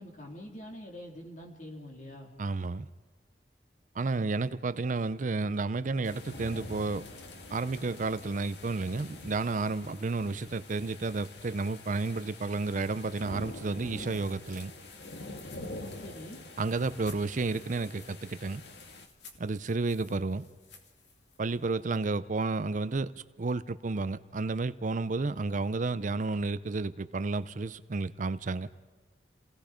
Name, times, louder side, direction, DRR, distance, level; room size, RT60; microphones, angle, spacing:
voice 1, 0.0-2.3 16.0-16.4, left 1 dB, 45° left, 1 dB, 3.6 m, -45 dB
voice 2, 2.4-2.9 4.0-7.0 7.5-14.7 16.6-18.6 19.4-20.4 21.4-23.1 23.4-28.7, right 3 dB, 45° right, 14 dB, 0.5 m, -31 dB
sound 1, 6.0-19.1, left 2 dB, 70° left, 1.8 m, -46 dB
sound 2, 13.5-22.1, left 4 dB, 85° left, 2.6 m, -57 dB
30.0 x 17.5 x 5.1 m, 1.3 s
head